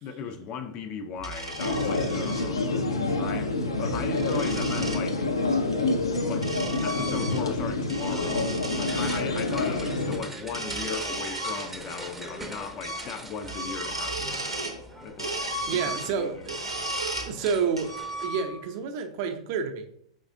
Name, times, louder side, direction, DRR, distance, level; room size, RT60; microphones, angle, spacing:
voice 1, 0.0-5.3 6.3-14.5 15.0-15.3 15.7-16.5, left 6 dB, 35° left, 0.4 m, -37 dB
sound 1, 1.2-2.5 3.7-5.1 6.0-7.6 7.9-9.2 10.4-12.1 12.4-12.5 12.8-13.1 13.4-14.8 15.2-17.3 17.8-18.7, right 1 dB, 90° right, 0.7 m, -35 dB
sound 2, 1.6-10.2, left 2 dB, 75° left, 0.6 m, -27 dB
sound 3, 7.2-18.3, right 2 dB, 10° right, 0.6 m, -43 dB
voice 2, 15.4-16.6 17.2-17.9 18.2-19.8, right 6 dB, 45° right, 0.6 m, -30 dB
4.7 x 3.7 x 2.6 m
figure-of-eight pair, 95°, 3 cm